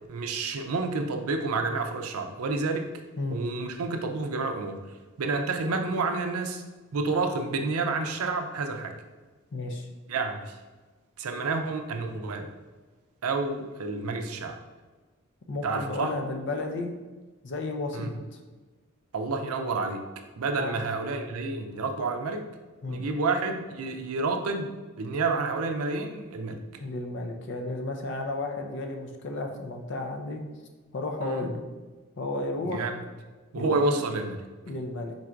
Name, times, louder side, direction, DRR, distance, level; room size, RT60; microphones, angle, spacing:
voice 1, 0.1-2.9 3.3-4.8 5.2-6.6 6.9-9.0 10.1-10.6 11.2-12.5 13.2-14.6 15.6-16.1 17.9-18.1 19.1-20.1 20.4-22.4 22.9-26.6 31.2-31.5 32.6-33.0 33.5-34.4, right 3 dB, 80° right, 5 dB, 0.5 m, -29 dB
voice 2, 9.5-9.9 15.5-16.9 17.4-18.4 20.6-20.9 22.8-23.1 26.8-30.4 30.9-31.6 32.2-32.9 33.5-34.0 34.7-35.1, left 2 dB, 55° left, 4 dB, 0.5 m, -33 dB
3.9 x 2.5 x 4.4 m, 1.3 s
head